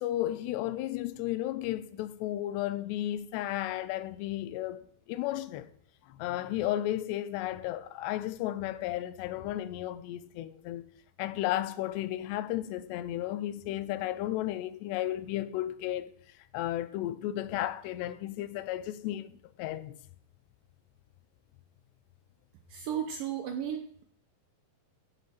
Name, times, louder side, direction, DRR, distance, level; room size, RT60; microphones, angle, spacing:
voice 1, 0.0-5.7 6.1-10.8 11.2-16.1 16.5-20.0, left 14 dB, 85° left, 2.8 m, -33 dB
voice 2, 22.7-24.0, right 9 dB, 75° right, 2.1 m, -34 dB
16.0 x 6.6 x 4.4 m
omnidirectional pair, 4.8 m